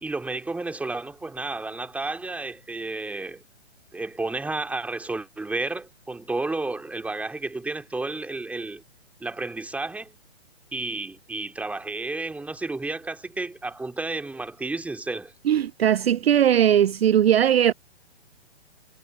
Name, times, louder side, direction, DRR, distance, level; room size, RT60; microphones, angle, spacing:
voice 1, 0.0-3.4 3.9-8.8 9.2-10.1 10.7-15.3, right 2 dB, 5° right, 2.8 m, -31 dB
voice 2, 15.4-17.7, right 10 dB, 60° right, 0.5 m, -19 dB
figure-of-eight pair, 125°, 35 cm